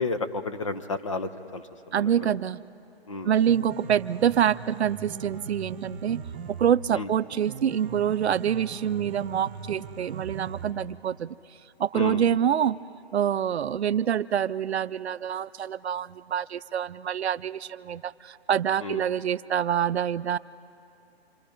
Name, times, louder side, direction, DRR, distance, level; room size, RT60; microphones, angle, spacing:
voice 1, 0.0-1.6 2.0-2.3 3.1-3.3 6.9-7.1 11.9-12.4 18.8-19.0, left 3 dB, 30° left, 9 dB, 0.7 m, -32 dB
voice 2, 1.9-2.6 3.2-6.2 6.6-11.4 11.8-12.8 13.1-20.4, right 9 dB, 75° right, 16 dB, 0.6 m, -26 dB
Piano, 3.1-11.1, right 5 dB, 20° right, 1.3 m, -40 dB
27.0 x 24.0 x 5.2 m, 2.6 s
hypercardioid pair, 170°, 33 cm